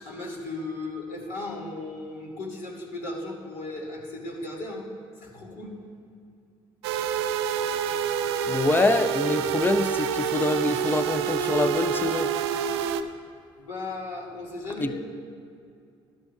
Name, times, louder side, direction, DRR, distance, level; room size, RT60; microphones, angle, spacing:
voice 1, 0.0-4.9 5.2-5.8 13.6-15.0, left 2 dB, 70° left, -3 dB, 2.5 m, -36 dB
sound 1, 6.8-13.0, right 8 dB, 80° right, 0.4 m, -27 dB
voice 2, 8.5-12.3 14.8-15.0, left 2 dB, 15° left, 11 dB, 0.6 m, -25 dB
12.5 x 11.5 x 2.5 m, 2.4 s
hypercardioid pair, 55°, 13 cm